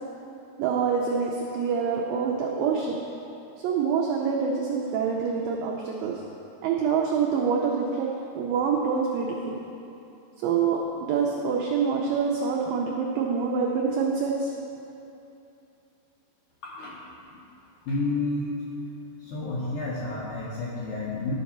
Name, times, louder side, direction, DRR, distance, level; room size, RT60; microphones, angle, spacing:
voice 1, 0.6-3.0 3.6-6.2 6.6-9.6 10.4-14.5, right 6 dB, 85° right, -1 dB, 2.0 m, -26 dB
voice 2, 16.6-17.0 17.8-18.6 19.2-21.3, left 2 dB, 80° left, -7 dB, 1.8 m, -30 dB
12.0 x 4.2 x 5.9 m, 2.8 s
omnidirectional pair, 4.9 m